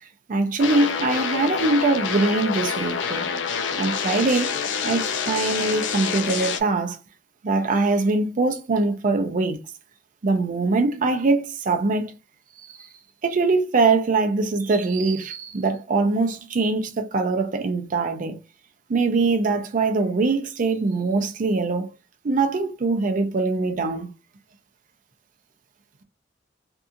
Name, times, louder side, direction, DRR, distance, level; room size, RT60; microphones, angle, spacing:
voice 1, 0.3-3.3 3.8-7.0 7.4-9.6 10.2-12.2 12.7-12.9 13.2-18.4 18.9-21.9 22.2-24.1, right 3 dB, 45° right, 0.4 m, -22 dB
sound 1, 0.6-6.6, left 6 dB, 70° left, 0.4 m, -27 dB
2.7 x 2.4 x 2.5 m
head